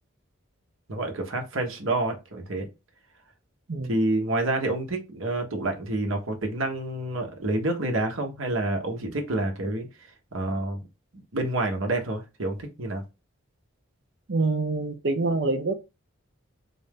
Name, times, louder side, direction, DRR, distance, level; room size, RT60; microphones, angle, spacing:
voice 1, 0.9-2.7 3.9-9.9 10.3-10.9 11.1-13.0, right 2 dB, 75° right, 1.2 m, -28 dB
voice 2, 14.3-15.7, right 3 dB, 55° right, 0.6 m, -25 dB
4.0 x 2.7 x 3.5 m
head